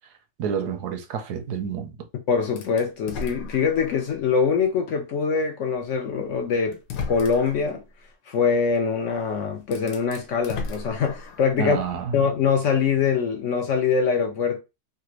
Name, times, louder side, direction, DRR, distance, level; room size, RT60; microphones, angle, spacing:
voice 1, 0.4-2.1 11.6-12.2, right 7 dB, 80° right, 1.2 m, -29 dB
voice 2, 2.3-6.8 7.1-7.8 8.3-11.8 12.1-14.6, left 6 dB, 65° left, 0.8 m, -23 dB
sound 1, 2.6-4.2 4.7-4.8 6.0-6.1 6.7-7.7 9.1-9.2 9.6-11.6, left 4 dB, 80° left, 1.2 m, -35 dB
3.3 x 2.5 x 2.9 m
omnidirectional pair, 1.7 m